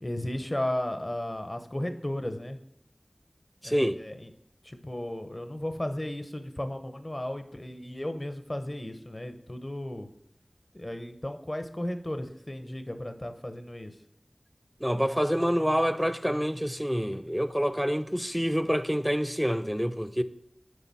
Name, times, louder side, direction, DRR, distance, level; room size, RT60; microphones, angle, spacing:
voice 1, 0.0-2.6 3.6-4.3 4.6-10.1 10.7-13.9, left 1 dB, 35° left, 0.8 m, -34 dB
voice 2, 3.6-4.0 14.8-20.2, equal, 5° right, 0.5 m, -27 dB
9.8 x 3.9 x 4.1 m
wide cardioid pair, 50°, 0 cm